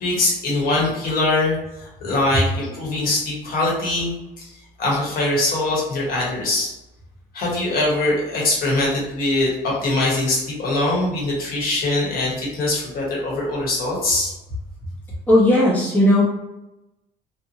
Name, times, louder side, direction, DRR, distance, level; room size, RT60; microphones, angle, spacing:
voice 1, 0.0-4.5 4.8-6.7 7.3-14.3, left 2 dB, 60° left, -4 dB, 1.1 m, -22 dB
voice 2, 15.3-16.3, left 1 dB, 10° left, -6 dB, 0.7 m, -15 dB
2.7 x 2.1 x 2.8 m, 0.95 s
cardioid pair, 110°, 17 cm